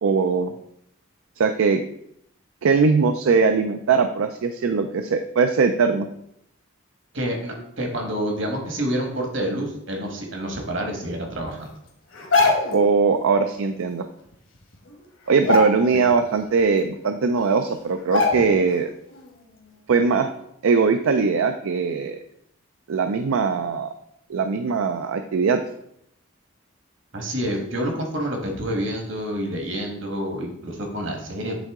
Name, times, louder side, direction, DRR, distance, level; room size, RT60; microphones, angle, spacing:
voice 1, 0.0-0.5 1.4-1.8 2.6-6.1 12.7-14.0 15.3-18.9 19.9-20.3 20.6-22.2 22.9-23.9 24.3-25.6, right 5 dB, 75° right, 7 dB, 0.4 m, -20 dB
voice 2, 7.1-11.7 15.9-16.0 27.1-31.6, equal, 60° right, 2 dB, 1.4 m, -28 dB
sound 1, 12.1-12.9 14.3-14.4 14.7-15.0 15.4-16.2 16.6-16.7 17.5-17.6 18.1-18.7 19.1-19.3, left 3 dB, 65° left, 1.2 m, -22 dB
8.3 x 3.7 x 3.6 m, 0.74 s
head